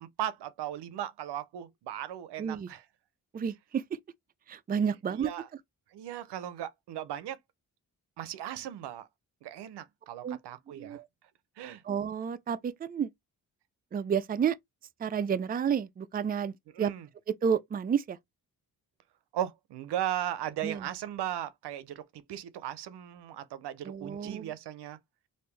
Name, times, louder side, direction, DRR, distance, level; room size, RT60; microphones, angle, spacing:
voice 1, 0.0-2.8 5.1-5.5 5.9-7.4 8.2-9.1 9.4-11.0 11.6-11.8 16.7-17.1 19.3-25.0, right 11 dB, 90° right, 0.6 m, -37 dB
voice 2, 3.3-3.8 4.5-5.3 10.2-10.4 10.8-11.1 11.8-13.1 13.9-14.6 15.0-16.9 17.4-18.2 20.6-20.9 23.8-24.5, right 7 dB, 25° right, 0.4 m, -30 dB
3.4 x 2.6 x 3.2 m
cardioid pair, 65°, 40 cm